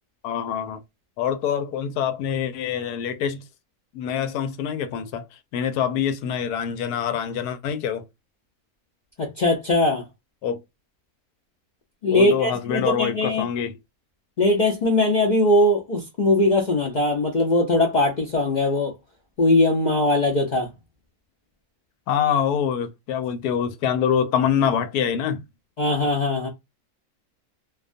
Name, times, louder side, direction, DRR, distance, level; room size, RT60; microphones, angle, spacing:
voice 1, 0.2-0.8 1.2-3.5 3.9-5.3 5.5-8.0 10.4-10.6 12.1-13.8 22.1-25.4, left 8 dB, 85° left, 1.1 m, -25 dB
voice 2, 9.2-10.0 12.0-13.4 14.4-18.9 19.4-20.7 25.8-26.5, left 2 dB, 70° left, 0.4 m, -20 dB
2.5 x 2.2 x 2.4 m
omnidirectional pair, 1.6 m